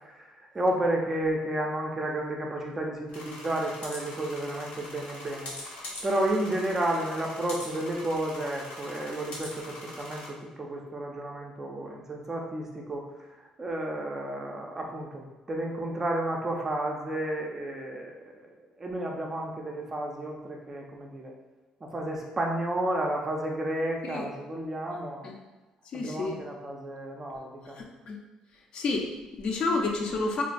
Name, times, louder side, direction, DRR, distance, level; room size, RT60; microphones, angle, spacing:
voice 1, 0.0-5.5 6.0-13.1 13.6-18.5 18.8-21.3 21.8-25.3 25.9-27.8, right 1 dB, 20° right, 0 dB, 0.3 m, -32 dB
sound 1, 3.1-10.3, left 1 dB, 75° left, 1.0 m, -42 dB
voice 2, 25.9-26.4 27.8-28.2 28.7-30.4, left 3 dB, 45° left, 1 dB, 0.4 m, -30 dB
3.9 x 2.2 x 2.5 m, 1.2 s
cardioid pair, 170°, 2 cm